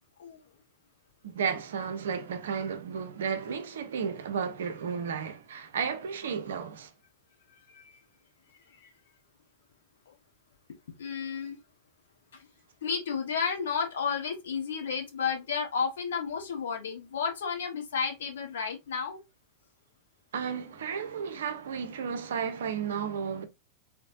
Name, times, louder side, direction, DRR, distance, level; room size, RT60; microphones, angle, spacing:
voice 1, 1.2-6.9 20.3-23.4, right 6 dB, 60° right, 0.6 m, -33 dB
voice 2, 7.7-8.0 8.8-8.9 10.1-10.2 11.0-11.6 12.3-12.5 12.8-19.2, left 6 dB, 65° left, 1.1 m, -32 dB
3.5 x 3.1 x 2.4 m
figure-of-eight pair, 90°, 0 cm